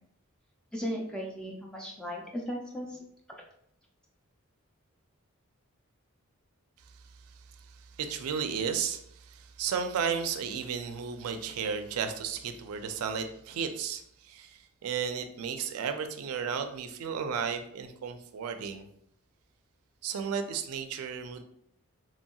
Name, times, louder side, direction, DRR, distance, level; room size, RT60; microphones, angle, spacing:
voice 1, 0.7-3.0, equal, 5° left, -1 dB, 0.4 m, -36 dB
voice 2, 7.7-18.9 20.0-21.4, right 6 dB, 80° right, 7 dB, 0.3 m, -34 dB
3.0 x 2.7 x 2.2 m, 0.71 s
head